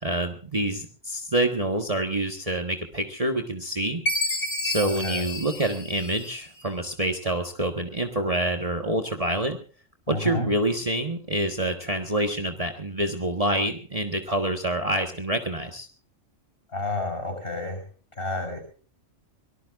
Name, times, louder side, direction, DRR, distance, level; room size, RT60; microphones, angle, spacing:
voice 1, 0.0-4.0 4.6-9.6 10.1-15.9, right 1 dB, 30° right, 4 dB, 1.5 m, -27 dB
Chime, 4.1-6.6, equal, 70° left, 3.4 m, -30 dB
voice 2, 10.1-10.5 16.7-17.8 18.2-18.6, left 2 dB, 45° left, 5 dB, 7.1 m, -30 dB
24.0 x 19.0 x 2.5 m, 0.40 s
omnidirectional pair, 1.3 m